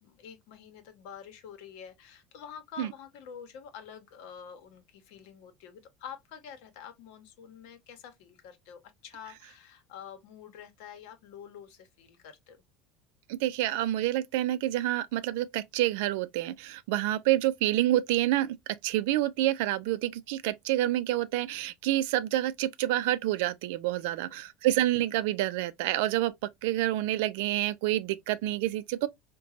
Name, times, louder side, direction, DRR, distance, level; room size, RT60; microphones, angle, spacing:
voice 1, 0.0-12.6 24.0-24.5, left 8 dB, 75° left, 0.9 m, -47 dB
voice 2, 13.3-18.6 18.8-29.1, right 14 dB, 80° right, 0.4 m, -28 dB
3.9 x 2.2 x 2.4 m
supercardioid pair, 120°, 0 cm